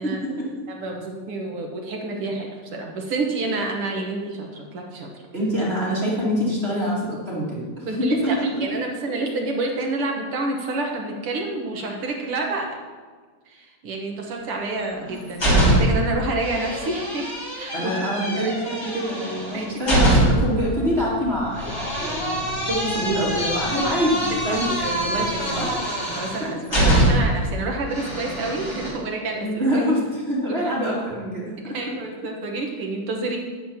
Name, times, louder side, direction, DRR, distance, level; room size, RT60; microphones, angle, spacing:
voice 1, 0.0-0.5 5.3-8.4 17.7-24.7 25.5-25.8 29.4-31.8, equal, 20° right, -6 dB, 2.5 m, -25 dB
voice 2, 0.7-5.1 7.9-12.7 13.5-18.5 19.5-19.7 24.4-25.7 26.1-29.5 30.5-31.0 31.7-33.4, right 2 dB, 55° right, 1 dB, 1.9 m, -29 dB
sound 1, 14.8-16.1 16.4-20.6 21.6-27.4 27.9-28.9, right 1 dB, 20° left, 3.7 m, -23 dB
sound 2, 20.7-25.7, left 1 dB, 70° left, 4.0 m, -36 dB
12.0 x 10.5 x 3.0 m, 1.5 s
omnidirectional pair, 3.4 m